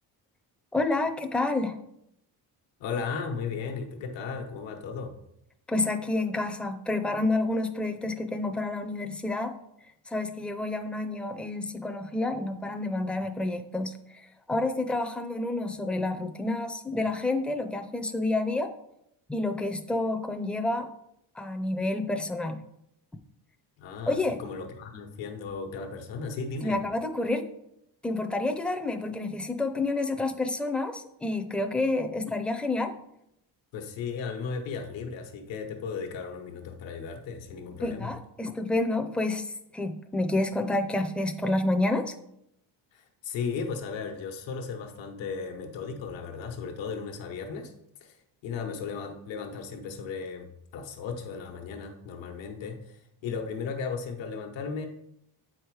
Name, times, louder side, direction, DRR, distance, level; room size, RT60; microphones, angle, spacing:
voice 1, 0.7-1.8 5.7-9.5 10.1-18.7 19.3-20.9 21.4-22.6 24.1-24.4 26.6-27.5 28.0-33.0 37.8-42.1, left 2 dB, 5° left, 5 dB, 0.4 m, -29 dB
voice 2, 2.8-5.2 23.8-26.8 33.7-38.1 42.9-47.7 48.0-48.2 48.4-54.9, left 5 dB, 85° left, 3 dB, 1.1 m, -36 dB
8.2 x 4.8 x 4.7 m, 0.79 s
cardioid pair, 150°, 44 cm